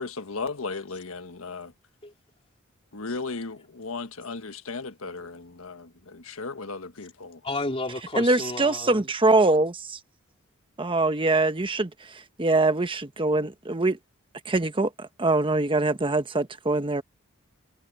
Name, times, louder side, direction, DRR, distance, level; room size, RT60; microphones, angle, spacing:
voice 1, 0.0-1.7 2.9-7.4, left 4 dB, 85° left, 1.4 m, -36 dB
voice 2, 7.4-9.0, left 2 dB, 30° left, 3.4 m, -32 dB
voice 3, 8.1-10.0 10.8-11.9 12.4-14.0 14.5-17.0, right 2 dB, 25° right, 1.1 m, -23 dB
head